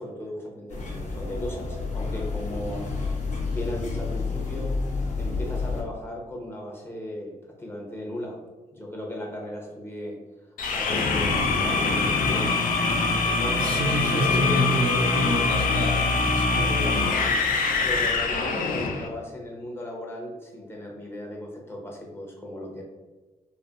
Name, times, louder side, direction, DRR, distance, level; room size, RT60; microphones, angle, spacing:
voice 1, 0.0-3.1 3.5-4.8 5.2-8.4 8.7-10.2 10.7-12.5 13.0-14.6 16.5-17.4 17.8-22.8, left 1 dB, 15° left, -1 dB, 0.8 m, -36 dB
sound 1, 0.7-5.8, left 4 dB, 55° left, 0.8 m, -30 dB
sound 2, 10.6-19.1, left 4 dB, 75° left, 0.4 m, -24 dB
voice 2, 13.6-17.1, right 1 dB, 80° right, 1 dB, 0.6 m, -28 dB
3.2 x 2.1 x 2.5 m, 1.2 s
cardioid pair, 70°, 14 cm